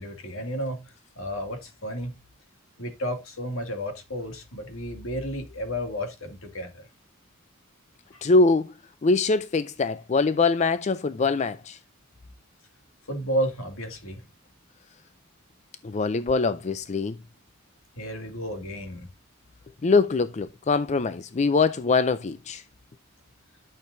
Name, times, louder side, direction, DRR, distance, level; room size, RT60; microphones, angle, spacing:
voice 1, 0.0-2.2 2.8-6.9 8.1-8.2 13.1-14.2 18.0-19.1, equal, 75° left, 2.3 m, -32 dB
voice 2, 8.2-8.7 9.0-11.8 15.8-17.2 19.8-22.6, left 3 dB, 35° left, 0.4 m, -23 dB
11.5 x 6.5 x 2.6 m
head